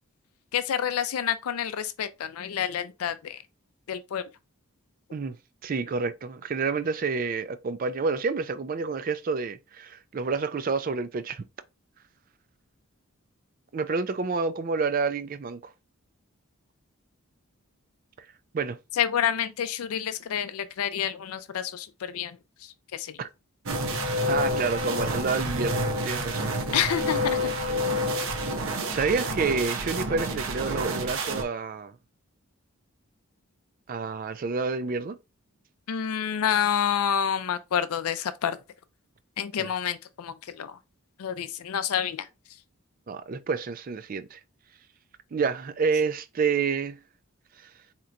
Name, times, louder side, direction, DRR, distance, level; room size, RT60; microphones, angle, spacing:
voice 1, 0.5-3.4 3.9-4.2 19.0-23.2 26.7-27.4 35.9-38.6 39.4-40.7 41.2-42.3, left 9 dB, 80° left, 0.4 m, -28 dB
voice 2, 5.6-11.4 13.7-15.6 18.5-18.8 23.2-23.3 24.3-26.6 28.9-31.9 33.9-35.2 39.6-39.7 43.1-44.4 45.3-47.0, right 4 dB, 40° right, 0.3 m, -28 dB
sound 1, 23.7-31.4, equal, 65° right, 0.7 m, -28 dB
4.4 x 2.9 x 2.5 m
head